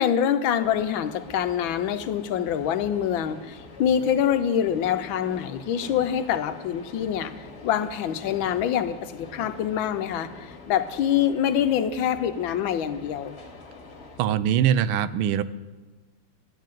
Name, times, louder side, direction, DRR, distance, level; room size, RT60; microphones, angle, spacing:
voice 1, 0.0-13.4, left 9 dB, 80° left, 10 dB, 1.4 m, -25 dB
sound 1, 0.6-14.4, left 3 dB, 35° left, 1.2 m, -45 dB
voice 2, 14.2-15.4, right 9 dB, 90° right, 15 dB, 1.5 m, -22 dB
12.5 x 7.5 x 9.1 m, 1.3 s
omnidirectional pair, 2.2 m